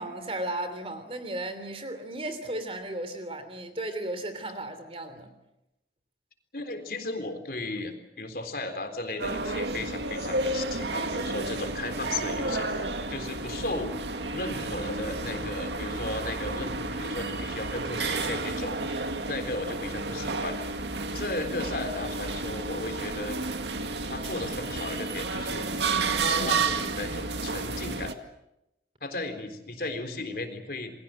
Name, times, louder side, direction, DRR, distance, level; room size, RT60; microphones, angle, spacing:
voice 1, 0.0-5.3, right 1 dB, 30° right, 3.2 m, -35 dB
voice 2, 6.5-13.9 14.3-20.8 21.1-23.4 24.1-25.9 26.2-28.1 29.0-30.9, left 2 dB, 55° left, 3.8 m, -35 dB
sound 1, 9.2-28.1, right 3 dB, 85° right, 2.1 m, -31 dB
29.0 x 21.5 x 7.7 m
head